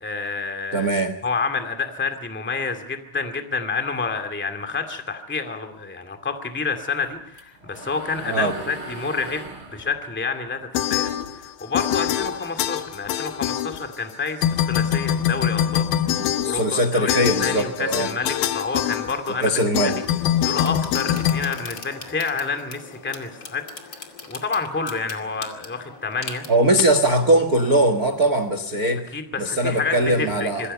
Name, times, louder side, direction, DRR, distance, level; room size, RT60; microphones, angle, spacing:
voice 1, 0.0-0.9 1.2-19.5 19.8-19.9 20.4-26.4 29.1-30.7, left 4 dB, 5° left, 6 dB, 1.2 m, -29 dB
voice 2, 0.7-1.1 8.3-8.5 16.2-18.1 19.4-20.0 26.5-30.7, right 1 dB, 80° right, 9 dB, 0.8 m, -21 dB
sound 1, 6.9-11.5 11.8-13.4, right 2 dB, 35° right, 4.5 m, -40 dB
sound 2, 10.7-11.5 11.7-14.1 14.4-22.3, left 11 dB, 75° left, 2.9 m, -24 dB
sound 3, 19.9-28.5, left 4 dB, 35° left, 2.6 m, -41 dB
26.5 x 23.0 x 5.5 m, 0.75 s
omnidirectional pair, 4.4 m